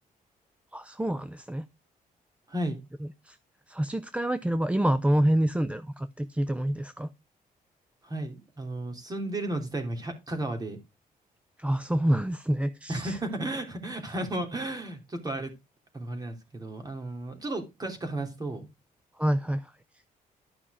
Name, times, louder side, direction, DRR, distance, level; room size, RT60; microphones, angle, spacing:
voice 1, 0.7-1.6 3.2-3.4 3.7-7.1 11.6-13.2 19.2-19.7, right 1 dB, 10° right, 0.6 m, -27 dB
voice 2, 2.5-2.8 8.0-10.8 12.9-15.5 15.9-18.7, right 1 dB, 25° right, 3.2 m, -33 dB
12.5 x 5.6 x 5.0 m
cardioid pair, 125°, 15 cm